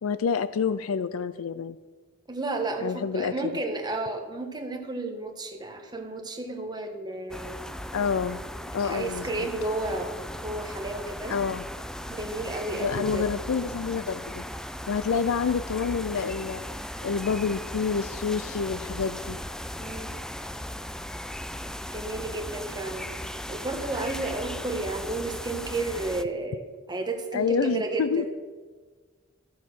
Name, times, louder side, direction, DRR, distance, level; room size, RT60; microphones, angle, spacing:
voice 1, 0.0-1.8 2.8-3.5 7.9-8.4 8.7-9.5 11.3-11.7 12.8-14.4 14.9-16.6 17.0-19.4 27.3-28.2, left 6 dB, 85° left, 15 dB, 0.4 m, -28 dB
voice 2, 2.3-7.6 8.8-11.4 12.1-13.2 19.8-20.1 21.9-28.3, right 2 dB, 20° right, 3 dB, 1.4 m, -32 dB
sound 1, 7.3-26.2, equal, 5° left, 0.3 m, -37 dB
13.5 x 7.2 x 6.2 m, 1.4 s
head